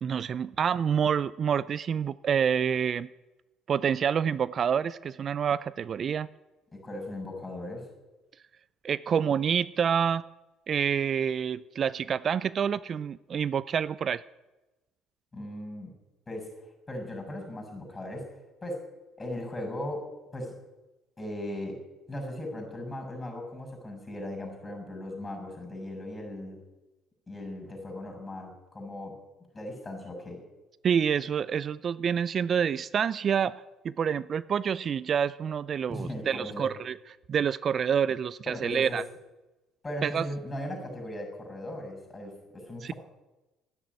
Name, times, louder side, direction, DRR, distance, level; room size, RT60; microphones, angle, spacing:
voice 1, 0.0-3.1 3.7-6.3 8.8-10.2 10.7-14.2 30.8-37.0 37.3-39.0 40.0-40.3 42.8-42.9, right 7 dB, 45° right, 19 dB, 0.5 m, -27 dB
voice 2, 6.7-7.9 15.3-15.9 16.3-16.5 16.9-18.3 18.6-18.8 19.2-20.5 21.2-21.8 22.1-26.6 27.3-29.2 29.5-30.4 35.9-36.7 38.5-39.0 39.8-42.9, left 1 dB, 20° left, 4 dB, 7.1 m, -38 dB
13.5 x 10.0 x 9.6 m, 1.1 s
supercardioid pair, 75°, 0 cm